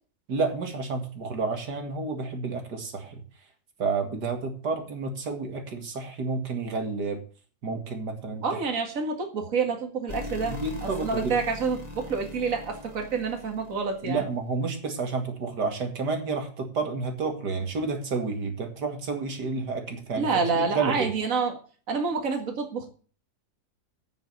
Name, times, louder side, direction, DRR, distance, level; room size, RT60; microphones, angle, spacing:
voice 1, 0.3-3.2 3.8-7.2 7.6-8.6 10.4-11.3 14.0-20.3 20.6-21.1, right 4 dB, 80° right, 4 dB, 2.7 m, -30 dB
voice 2, 8.4-14.2 20.2-21.6 21.9-22.9, right 4 dB, 55° right, 3 dB, 2.3 m, -28 dB
sound 1, 10.1-14.3, left 2 dB, 25° left, 2.0 m, -40 dB
8.7 x 7.7 x 8.3 m, 0.40 s
omnidirectional pair, 1.7 m